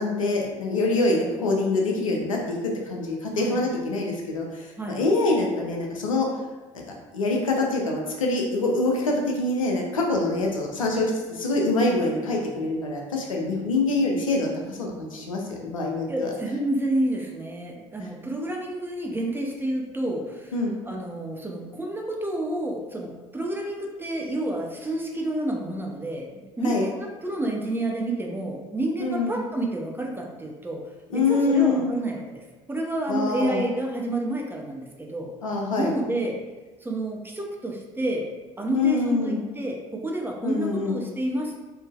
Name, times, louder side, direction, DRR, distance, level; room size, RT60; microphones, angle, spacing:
voice 1, 0.0-6.3 7.1-16.3 20.5-20.7 26.6-26.8 29.0-29.4 31.1-31.9 33.1-33.6 35.4-35.9 38.7-39.4 40.4-41.0, left 2 dB, 90° left, -1 dB, 0.5 m, -25 dB
voice 2, 16.1-20.5 20.8-30.8 31.1-32.4 32.7-35.3 35.8-36.3 36.8-38.3 38.6-41.6, right 1 dB, 10° right, 0 dB, 0.7 m, -29 dB
3.7 x 2.7 x 2.4 m, 1.2 s
figure-of-eight pair, 55°, 17 cm